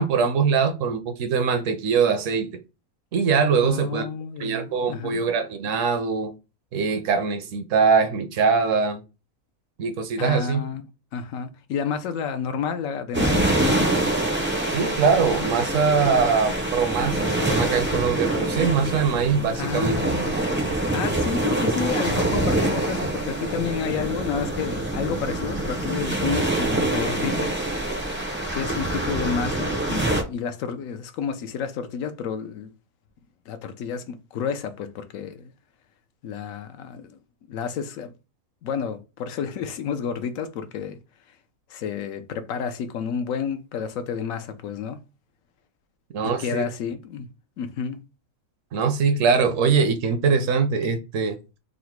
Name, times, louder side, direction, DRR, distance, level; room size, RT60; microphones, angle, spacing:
voice 1, 0.0-2.5 3.1-4.1 4.4-6.3 6.7-9.0 9.8-10.6 14.7-20.2 46.1-46.6 48.7-51.4, right 5 dB, 70° right, 0.9 m, -22 dB
voice 2, 3.6-5.2 10.2-10.8 11.1-13.9 19.5-20.3 20.9-27.7 28.5-32.7 33.5-35.5 36.2-37.2 37.5-38.1 38.6-41.0 41.7-45.0 46.2-47.3 47.6-48.0, left 7 dB, 75° left, 1.0 m, -30 dB
sound 1, 13.1-30.2, right 2 dB, 20° right, 0.3 m, -25 dB
3.8 x 2.1 x 4.4 m
omnidirectional pair, 1.5 m